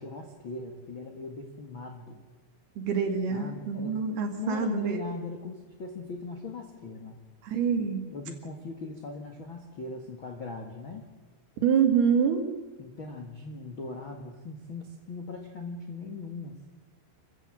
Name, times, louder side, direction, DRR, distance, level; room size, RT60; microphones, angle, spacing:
voice 1, 0.0-2.2 3.3-4.1 4.4-7.2 8.1-11.1 12.8-16.7, left 3 dB, 75° left, 3 dB, 1.1 m, -39 dB
voice 2, 2.8-5.0 7.4-8.1 11.6-12.5, right 7 dB, 60° right, 4 dB, 3.7 m, -26 dB
27.5 x 15.5 x 7.7 m, 1.2 s
omnidirectional pair, 5.5 m